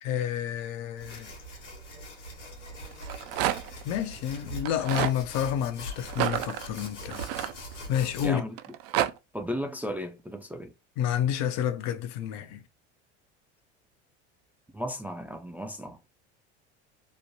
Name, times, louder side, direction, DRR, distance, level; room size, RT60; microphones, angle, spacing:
voice 1, 0.0-1.3 3.8-7.2 7.9-8.4 11.0-12.6, left 10 dB, 50° left, 0.5 m, -29 dB
Steel Brush on Aluminium Tube, 1.0-8.3, equal, 90° left, 1.3 m, -42 dB
Rattle, 2.9-3.8 4.6-5.2 6.1-8.0 8.6-9.1, right 12 dB, 60° right, 0.5 m, -30 dB
voice 2, 8.2-8.5 9.3-10.7 14.7-16.0, equal, 5° right, 0.3 m, -35 dB
3.1 x 2.1 x 2.7 m
hypercardioid pair, 80°, 35 cm